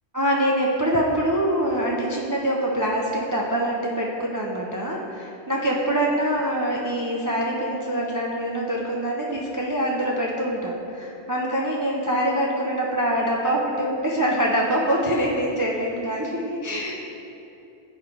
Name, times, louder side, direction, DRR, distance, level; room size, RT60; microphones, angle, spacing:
voice 1, 0.1-16.9, equal, 30° right, -3 dB, 0.4 m, -24 dB
9.5 x 3.2 x 4.5 m, 2.8 s
omnidirectional pair, 1.1 m